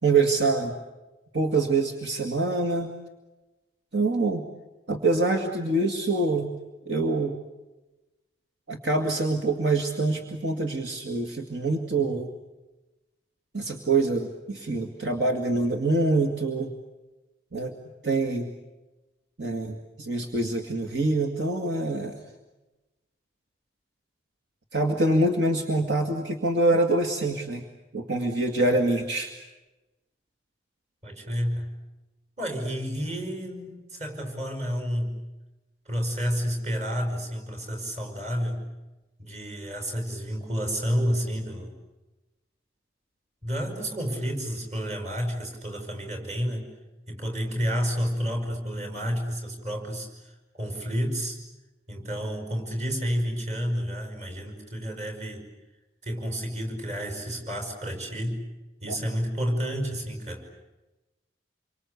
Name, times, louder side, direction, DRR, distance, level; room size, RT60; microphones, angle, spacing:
voice 1, 0.0-0.7 1.3-2.9 3.9-4.5 4.9-6.5 6.9-7.4 8.7-12.3 13.5-16.7 17.5-17.7 18.0-18.5 19.4-22.2 24.7-27.6 27.9-29.3 58.9-59.0, right 2 dB, 70° right, 4 dB, 2.2 m, -25 dB
voice 2, 31.0-31.7 32.4-35.2 35.9-38.7 39.2-41.7 43.4-46.7 47.1-51.4 51.9-55.5 56.0-58.5 58.8-60.5, equal, 35° right, 5 dB, 5.7 m, -30 dB
28.0 x 24.5 x 8.3 m, 1.1 s
head